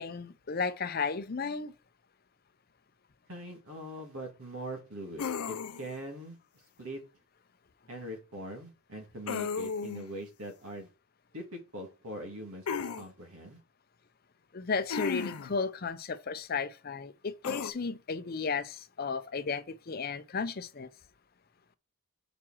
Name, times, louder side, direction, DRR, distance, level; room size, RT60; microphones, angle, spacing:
voice 1, 0.0-1.7 14.5-20.9, left 5 dB, 45° left, 0.5 m, -34 dB
voice 2, 3.3-6.4 6.8-7.0 7.9-10.9 11.3-12.7 13.0-13.6, right 1 dB, 80° right, 2.1 m, -42 dB
sound 1, 5.2-6.0 9.3-10.1 12.7-13.0 14.9-15.6 17.4-17.7, left 6 dB, 90° left, 0.5 m, -34 dB
5.0 x 4.7 x 6.1 m
head